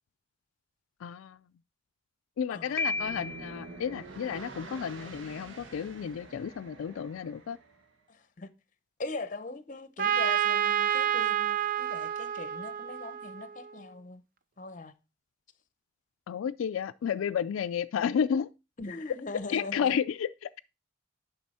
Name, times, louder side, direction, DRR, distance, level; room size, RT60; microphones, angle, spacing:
voice 1, 1.0-1.4 2.4-7.6 16.3-18.5 19.5-20.6, left 7 dB, 85° left, 0.3 m, -32 dB
voice 2, 2.5-2.8 8.1-8.5 9.0-14.2 14.6-14.9 18.8-20.0, left 3 dB, 40° left, 0.7 m, -41 dB
Piano, 2.8-3.7, left 3 dB, 10° left, 0.7 m, -33 dB
sound 1, 2.8-7.9, right 3 dB, 70° right, 1.3 m, -47 dB
Trumpet, 10.0-13.7, right 10 dB, 45° right, 0.6 m, -29 dB
9.5 x 6.2 x 4.1 m
head